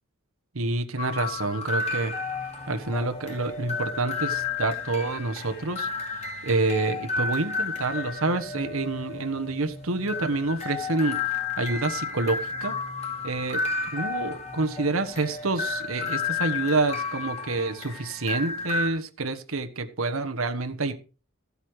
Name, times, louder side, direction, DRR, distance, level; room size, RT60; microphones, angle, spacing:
voice 1, 0.5-2.1 2.7-5.9 6.4-12.8 13.2-13.6 13.9-20.9, right 3 dB, 80° right, 1.3 m, -28 dB
sound 1, 1.0-18.9, left 4 dB, 30° left, 2.8 m, -32 dB
14.5 x 8.4 x 4.9 m
head